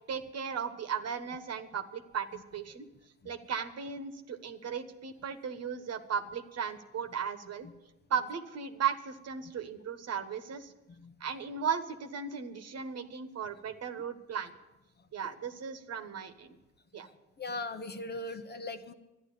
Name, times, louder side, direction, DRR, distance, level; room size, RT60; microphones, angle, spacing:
voice 1, 0.1-2.3 2.5-2.8 3.2-7.7 8.1-10.7 11.2-14.5 15.1-16.6 16.9-17.1, right 7 dB, 55° right, 8 dB, 1.3 m, -36 dB
voice 2, 17.4-18.9, left 2 dB, 35° left, 9 dB, 0.9 m, -39 dB
12.5 x 10.5 x 8.4 m, 1.0 s
cardioid pair, 90°, 30 cm